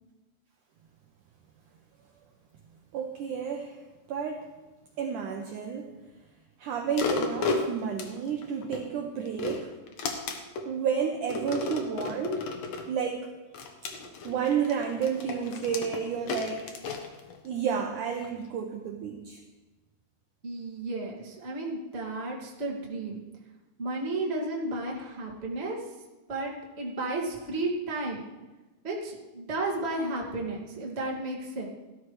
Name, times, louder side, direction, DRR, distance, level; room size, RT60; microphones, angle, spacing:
voice 1, 2.9-4.4 5.0-5.9 6.6-9.7 10.7-12.4 12.9-13.3 14.2-16.7 17.4-19.4, right 7 dB, 80° right, 3 dB, 1.8 m, -31 dB
sound 1, 6.9-8.8 9.3-10.7 11.3-12.9 13.5-17.7 18.2-18.3, left 3 dB, 70° left, 1.6 m, -33 dB
voice 2, 20.4-23.2 23.8-25.9 26.3-26.5 26.8-28.2 28.8-31.7, right 2 dB, 25° right, -3 dB, 1.4 m, -33 dB
17.0 x 12.5 x 3.2 m, 1.1 s
omnidirectional pair, 4.5 m